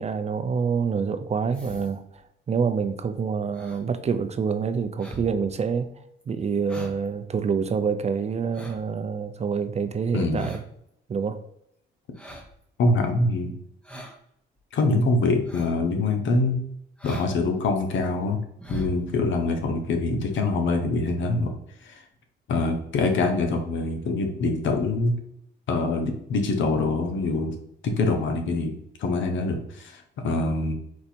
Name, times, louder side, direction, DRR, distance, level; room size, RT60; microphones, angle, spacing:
voice 1, 0.0-2.2 2.5-5.9 6.3-10.6 11.1-11.4, right 6 dB, 35° right, 9 dB, 0.5 m, -27 dB
sound 1, 1.5-2.2 3.5-3.8 4.3-4.5 5.0-5.3 5.8-5.9 6.2-6.3 6.7-7.1 7.4-7.5 8.2-9.0 10.3-10.8 12.1-12.6 13.8-14.2 14.6-14.7 15.5-15.8 16.1-16.2 17.0-17.3 17.6-18.1 18.5-19.0 20.0-20.1 20.3-20.4, right 1 dB, 5° left, 1.0 m, -40 dB
voice 2, 10.1-10.5 12.8-13.5 14.7-16.6 17.0-18.4 18.7-21.5 21.8-22.0 22.5-25.2 25.7-27.5 27.8-30.7, left 3 dB, 70° left, 5 dB, 0.9 m, -24 dB
4.5 x 2.7 x 4.2 m, 0.74 s
cardioid pair, 90°, 20 cm